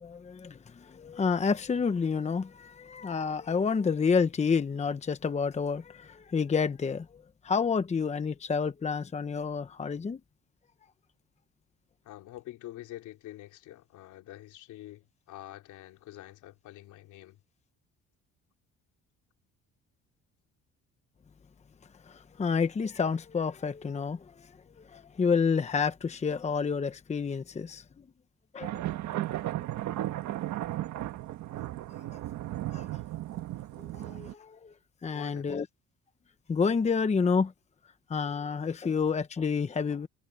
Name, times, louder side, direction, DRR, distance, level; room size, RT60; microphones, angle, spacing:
voice 1, 0.0-10.2 22.1-24.5 24.8-27.8 28.5-28.8 32.7-32.9 33.8-34.7 35.0-35.7 36.5-37.5 38.1-40.1, left 5 dB, 25° left, 0.9 m, -29 dB
voice 2, 12.0-17.4 35.1-35.7, left 15 dB, 85° left, 3.8 m, -46 dB
sound 1, 28.6-34.3, right 14 dB, 70° right, 1.5 m, -35 dB
cardioid pair, 120°, 29 cm